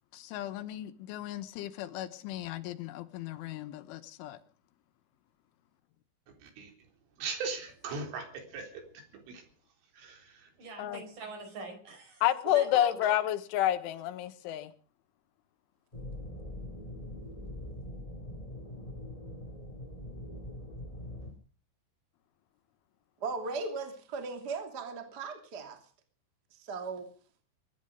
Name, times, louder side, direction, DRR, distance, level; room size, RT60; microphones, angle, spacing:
voice 1, 0.1-4.4 10.8-11.0 12.2-14.7, left 12 dB, 80° left, 12 dB, 3.6 m, -31 dB
voice 2, 6.4-6.7 7.2-8.8 9.3-9.4 9.9-10.5, right 4 dB, 80° right, 5 dB, 6.1 m, -39 dB
voice 3, 10.6-13.0, right 3 dB, 45° right, 6 dB, 6.0 m, -43 dB
sound 1, 15.9-21.3, left 1 dB, 20° left, 0.9 m, -43 dB
voice 4, 23.2-25.8 26.6-27.1, right 4 dB, 25° right, 6 dB, 2.4 m, -37 dB
23.0 x 12.0 x 5.2 m, 0.43 s
omnidirectional pair, 5.6 m